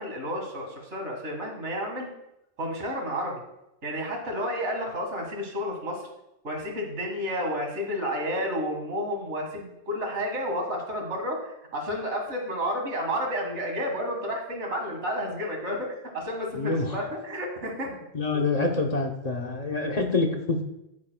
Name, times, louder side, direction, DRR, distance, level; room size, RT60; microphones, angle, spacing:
voice 1, 0.0-2.1 2.6-3.4 3.8-6.0 6.4-17.9, equal, 80° right, 1 dB, 2.0 m, -31 dB
voice 2, 16.5-17.0 18.1-20.6, left 3 dB, 40° left, 3 dB, 0.8 m, -26 dB
9.8 x 9.1 x 2.2 m, 0.86 s
omnidirectional pair, 1.2 m